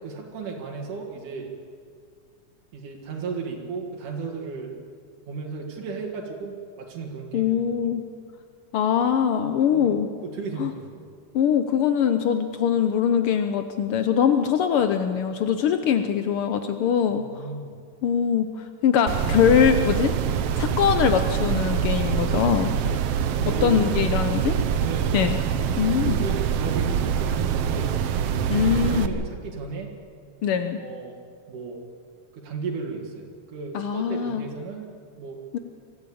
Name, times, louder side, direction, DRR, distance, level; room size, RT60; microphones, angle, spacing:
voice 1, 0.0-1.5 2.7-4.7 5.3-7.6 7.8-7.9 9.7-11.1 17.1-17.8 22.8-23.0 23.4-23.9 24.8-25.3 26.0-27.9 28.9-29.9 30.8-31.2 31.5-31.8 32.3-34.9 35.2-35.4, right 5 dB, 85° right, 0 dB, 3.5 m, -35 dB
voice 2, 7.3-8.0 8.7-10.1 10.6-10.7 11.3-17.2 18.0-20.1 20.5-22.7 23.6-24.6 25.1-25.4 25.8-26.2 28.5-29.2 30.4-30.8 33.7-34.4 35.5-35.6, left 8 dB, 85° left, 8 dB, 1.2 m, -22 dB
sound 1, 19.1-29.1, right 8 dB, 65° right, 1.7 m, -25 dB
23.5 x 14.5 x 8.5 m, 2.1 s
omnidirectional pair, 3.5 m